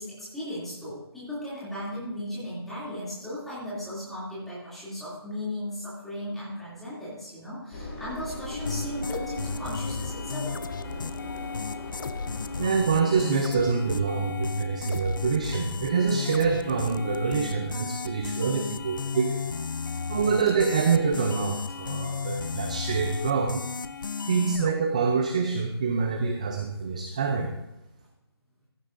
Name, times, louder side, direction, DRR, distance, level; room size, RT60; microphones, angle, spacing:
voice 1, 0.0-10.6, left 1 dB, ahead, -10 dB, 2.8 m, -36 dB
Engine, 7.7-12.7, left 1 dB, 25° left, 3.4 m, -37 dB
sound 1, 8.7-24.7, left 5 dB, 50° left, 0.6 m, -34 dB
voice 2, 12.6-19.4 20.1-23.6 24.2-27.5, right 5 dB, 15° right, 4 dB, 0.5 m, -26 dB
15.0 x 14.5 x 2.6 m, 0.92 s
figure-of-eight pair, 170°, 14 cm